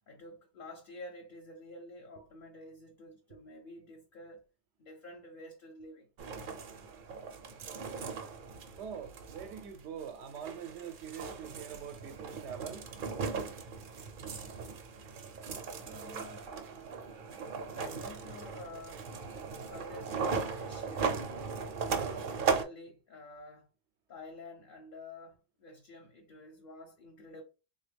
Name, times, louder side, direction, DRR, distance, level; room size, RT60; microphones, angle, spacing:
voice 1, 0.1-4.5 4.8-6.1 15.8-16.5 17.8-19.1 19.6-21.2 22.0-23.7 24.1-27.4, left 2 dB, 55° left, 0.8 m, -49 dB
sound 1, 6.2-22.6, right 5 dB, 60° right, 0.6 m, -38 dB
voice 2, 8.8-12.9, right 7 dB, 80° right, 0.9 m, -44 dB
3.3 x 2.2 x 3.3 m
omnidirectional pair, 1.1 m